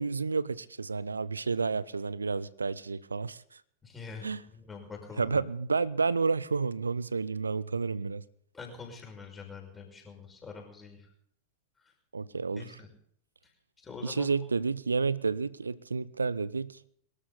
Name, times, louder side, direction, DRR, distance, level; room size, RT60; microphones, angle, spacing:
voice 1, 0.0-3.4 4.2-4.4 5.2-8.2 12.1-12.7 14.0-16.8, right 4 dB, 75° right, 0.5 m, -30 dB
voice 2, 3.8-5.4 8.5-11.1 11.8-11.9 12.5-12.9 13.4-13.5 13.8-14.3, left 4 dB, 15° left, 5.8 m, -45 dB
23.0 x 13.5 x 4.1 m
figure-of-eight pair, 90°, 0 cm